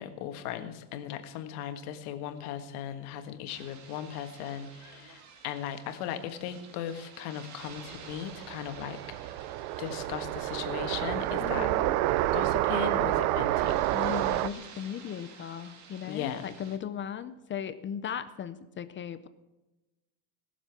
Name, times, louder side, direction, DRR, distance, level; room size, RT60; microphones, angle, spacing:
voice 1, 0.0-9.4 9.8-11.7 12.3-13.8 16.1-16.5, left 10 dB, 90° left, 8 dB, 1.6 m, -38 dB
sound 1, 3.5-16.8, right 6 dB, 40° right, 2.0 m, -52 dB
sound 2, 7.7-14.5, right 15 dB, 75° right, 0.7 m, -29 dB
voice 2, 11.4-11.9 13.9-19.3, left 8 dB, 25° left, 12 dB, 0.5 m, -37 dB
20.0 x 7.3 x 5.8 m, 1.1 s
cardioid pair, 140°, 44 cm